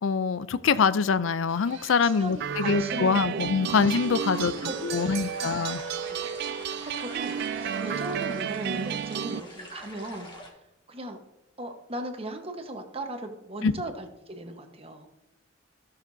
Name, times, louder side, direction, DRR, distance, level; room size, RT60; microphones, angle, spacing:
voice 1, 0.0-4.5 4.8-5.8 13.6-13.7, left 5 dB, 80° left, 0.4 m, -24 dB
sound 1, 1.5-9.0, right 3 dB, 80° right, 1.8 m, -44 dB
voice 2, 2.0-3.4 3.7-3.9 4.3-5.6 6.1-6.4 6.8-10.3 10.9-11.2 11.6-15.1, right 1 dB, 30° right, 1.2 m, -38 dB
sound 2, 2.4-9.4, right 8 dB, 60° right, 0.3 m, -32 dB
sound 3, 3.7-10.5, left 1 dB, 25° left, 1.7 m, -46 dB
15.0 x 6.8 x 2.7 m
head